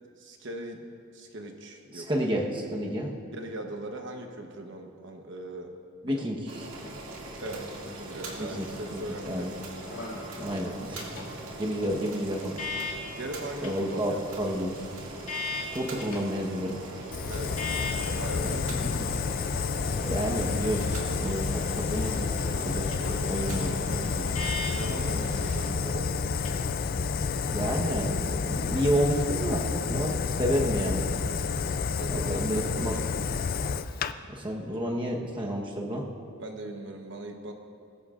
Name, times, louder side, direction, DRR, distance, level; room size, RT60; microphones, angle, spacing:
voice 1, 0.2-2.3 3.3-5.7 6.1-6.2 7.4-9.5 10.5-10.8 13.2-14.2 17.2-17.6 18.0-19.0 24.7-26.1 31.9-33.0 36.4-37.5, right 1 dB, 55° right, 3 dB, 1.1 m, -39 dB
voice 2, 1.9-3.1 6.0-6.7 8.4-9.5 10.4-11.0 11.6-12.7 13.6-14.8 15.7-16.8 18.4-18.6 18.8-19.1 20.0-22.9 23.3-24.5 27.5-31.2 32.1-33.0 34.3-36.0, equal, 25° right, -1 dB, 1.1 m, -30 dB
Boiling, 6.5-25.7, right 2 dB, 75° right, 2.3 m, -41 dB
sound 1, 9.7-27.9, left 3 dB, 75° left, 2.4 m, -42 dB
Fire, 17.1-34.1, left 5 dB, 45° left, 0.4 m, -30 dB
21.0 x 13.5 x 2.5 m, 2.3 s
head